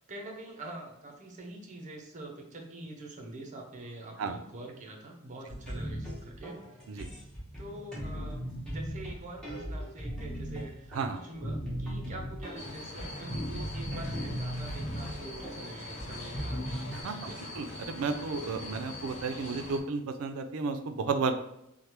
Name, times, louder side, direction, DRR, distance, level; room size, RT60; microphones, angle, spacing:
voice 1, 0.1-6.6 7.6-16.6 17.1-17.5, right 2 dB, 40° right, 1 dB, 0.6 m, -45 dB
sound 1, 5.5-17.0, equal, 5° left, 1.0 m, -38 dB
sound 2, 12.5-19.8, left 2 dB, 35° left, 0.6 m, -43 dB
voice 2, 16.9-21.3, right 4 dB, 85° right, 8 dB, 0.4 m, -33 dB
3.2 x 2.1 x 2.9 m, 0.83 s
head